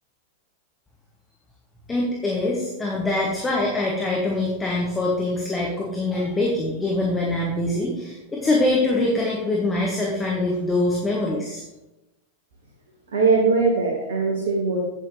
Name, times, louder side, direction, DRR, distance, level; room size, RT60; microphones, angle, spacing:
voice 1, 1.9-11.6, left 2 dB, 15° left, -3 dB, 1.5 m, -24 dB
voice 2, 13.1-14.9, right 4 dB, 65° right, -1 dB, 1.5 m, -21 dB
8.4 x 8.4 x 3.2 m, 0.98 s
figure-of-eight pair, 90°, 0 cm